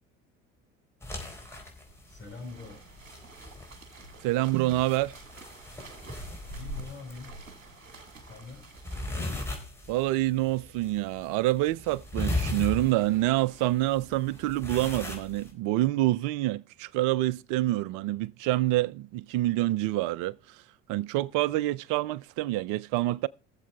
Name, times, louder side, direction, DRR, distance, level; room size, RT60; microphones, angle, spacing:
sound 1, 1.0-15.5, left 1 dB, 5° left, 4.0 m, -38 dB
sound 2, 2.0-9.5 11.8-13.7, right 3 dB, 85° right, 1.6 m, -51 dB
voice 1, 2.1-2.8 6.5-7.3 8.2-8.7, left 4 dB, 30° left, 5.6 m, -44 dB
voice 2, 4.2-5.1 9.9-20.6 20.9-23.3, right 16 dB, 55° right, 0.5 m, -27 dB
20.5 x 7.4 x 3.4 m
figure-of-eight pair, 60°, 39 cm